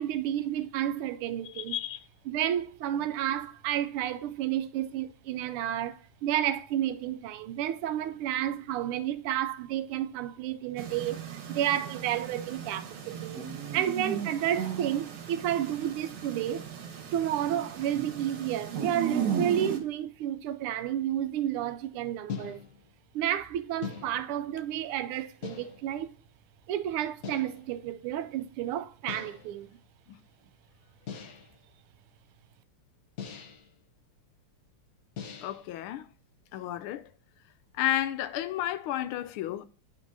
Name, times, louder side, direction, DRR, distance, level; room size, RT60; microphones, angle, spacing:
voice 1, 0.0-1.7 2.3-11.2 11.5-13.4 13.7-16.7 17.1-22.6 23.1-26.1 26.7-29.8, right 11 dB, 85° right, 1.5 m, -31 dB
voice 2, 1.5-2.0 30.1-30.2 35.4-36.1 36.5-37.1 37.7-39.6, left 13 dB, 80° left, 1.4 m, -32 dB
sound 1, 10.8-19.8, right 7 dB, 60° right, 1.6 m, -36 dB
sound 2, 22.3-22.9 23.8-24.5 25.4-26.0 27.2-27.7 29.1-29.6 31.1-31.6 33.2-33.7 35.2-35.7, left 7 dB, 55° left, 1.0 m, -41 dB
9.1 x 5.3 x 2.6 m
omnidirectional pair, 2.4 m